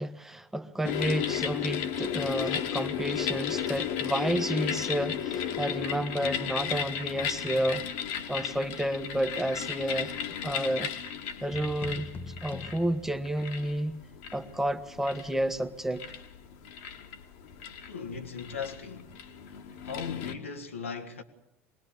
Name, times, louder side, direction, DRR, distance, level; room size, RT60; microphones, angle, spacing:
voice 1, 0.0-7.8 8.3-10.1 10.4-10.9 11.4-14.0 14.3-16.0, right 1 dB, 5° right, 1.2 m, -31 dB
sound 1, 0.8-20.3, left 9 dB, 60° left, 1.9 m, -34 dB
sound 2, 11.5-13.8, left 3 dB, 30° left, 1.2 m, -43 dB
voice 2, 17.9-19.1 19.8-21.2, left 6 dB, 75° left, 1.6 m, -38 dB
23.5 x 20.0 x 7.1 m
figure-of-eight pair, 70°, 7 cm